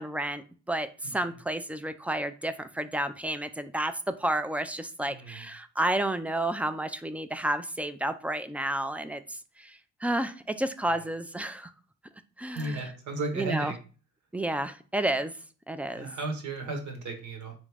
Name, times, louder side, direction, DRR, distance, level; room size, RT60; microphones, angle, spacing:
voice 1, 0.0-11.7 12.4-12.8 13.4-13.7 14.3-15.3 15.7-16.1, right 1 dB, 5° right, 10 dB, 0.3 m, -31 dB
voice 2, 5.0-5.5 10.9-11.1 12.5-13.7 15.9-17.5, right 2 dB, 70° right, 4 dB, 1.3 m, -35 dB
3.6 x 3.1 x 3.4 m, 0.37 s
cardioid pair, 90°, 30 cm